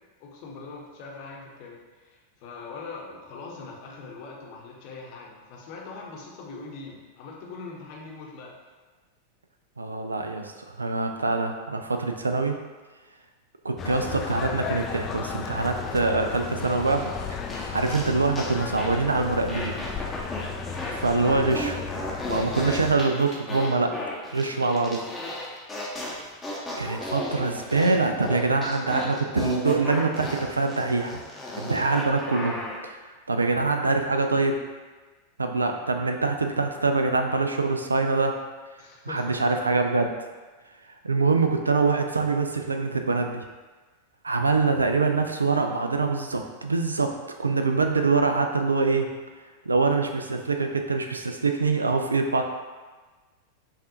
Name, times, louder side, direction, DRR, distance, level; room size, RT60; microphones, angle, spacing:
voice 1, 0.2-8.6 20.3-20.6 33.4-33.8 38.8-39.4, left 4 dB, 45° left, -2 dB, 0.8 m, -42 dB
voice 2, 9.8-12.6 13.6-17.4 17.7-19.7 20.9-21.8 22.3-24.0 24.3-25.0 26.8-31.2 31.6-32.6 33.3-34.6 35.4-38.4 39.1-40.1 41.0-43.4 44.2-47.1 47.4-49.1 49.7-52.4, right 3 dB, 80° right, 5 dB, 0.3 m, -24 dB
sound 1, 13.8-23.0, left 5 dB, 30° left, 0.3 m, -34 dB
sound 2, 16.6-18.5 18.8-19.0 19.5-20.9 21.2-32.8, left 1 dB, 10° left, 0.7 m, -35 dB
5.3 x 2.4 x 2.8 m, 1.3 s
figure-of-eight pair, 90°, 0 cm